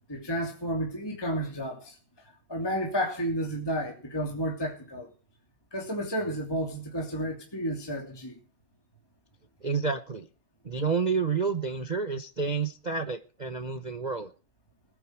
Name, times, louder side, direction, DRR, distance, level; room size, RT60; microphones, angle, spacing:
voice 1, 0.1-2.0 2.5-5.1 5.7-8.4, equal, 10° left, 2.8 m, -31 dB
voice 2, 9.6-10.3 10.6-14.3, right 5 dB, 80° right, 0.4 m, -29 dB
20.0 x 9.6 x 4.7 m
omnidirectional pair, 2.3 m